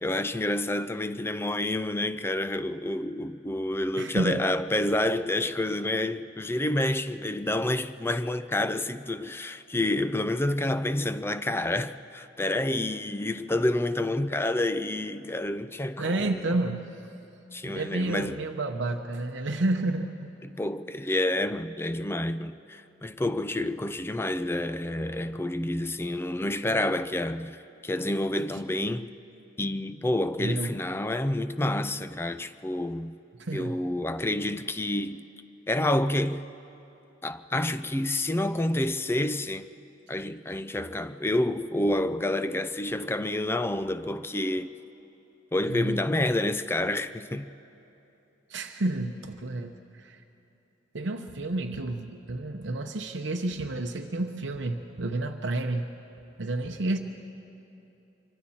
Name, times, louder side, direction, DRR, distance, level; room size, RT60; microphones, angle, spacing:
voice 1, 0.0-16.6 17.5-18.5 20.4-29.1 29.6-33.2 33.5-35.3 35.7-36.5 37.2-39.6 40.1-44.7 45.5-47.5, left 1 dB, 10° left, 0.4 m, -28 dB
voice 2, 4.0-4.5 16.0-16.9 17.6-20.3 30.4-30.7 33.4-33.8 45.7-46.0 48.5-50.2 50.9-55.9 56.4-57.0, right 2 dB, 65° right, 0.8 m, -30 dB
25.5 x 24.0 x 4.3 m
head